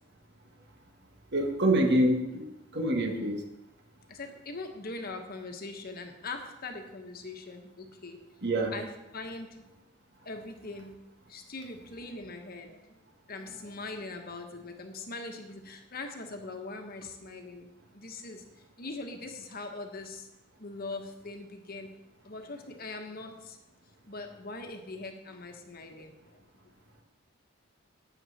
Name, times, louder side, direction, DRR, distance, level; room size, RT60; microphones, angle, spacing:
voice 1, 1.3-2.5 2.7-3.4 8.4-8.7, right 1 dB, 55° right, 3 dB, 1.8 m, -26 dB
voice 2, 4.1-8.2 8.7-9.6 10.2-11.0 11.3-13.0 13.3-18.4 18.8-20.3 20.6-21.9 22.2-23.6 24.1-26.1, left 3 dB, 45° left, 5 dB, 1.3 m, -41 dB
12.0 x 9.0 x 4.2 m, 0.95 s
head